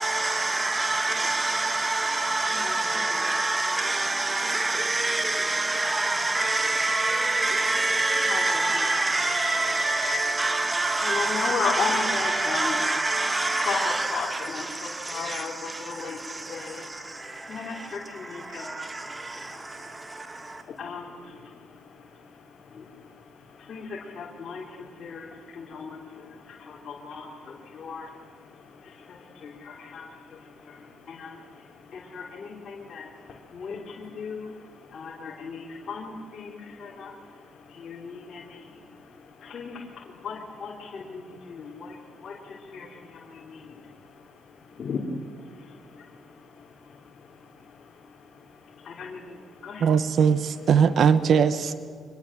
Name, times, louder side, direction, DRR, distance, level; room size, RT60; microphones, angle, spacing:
voice 1, 0.0-20.6, right 2 dB, 20° right, 1.6 m, -27 dB
voice 2, 2.0-4.4 8.1-16.2 16.5-16.8 17.5-18.7 19.7-19.8 20.7-21.4 22.7-22.8 23.7-28.1 28.8-30.1 30.6-30.7 31.1-31.4 31.9-33.1 33.5-34.5 34.9-37.1 37.7-38.8 39.4-43.7 44.8-45.1 45.9-46.0 48.8-49.4 49.6-49.9, left 5 dB, 50° left, 3.4 m, -36 dB
voice 3, 49.8-51.7, right 7 dB, 60° right, 1.0 m, -20 dB
25.0 x 21.5 x 7.5 m
cardioid pair, 90°, 0 cm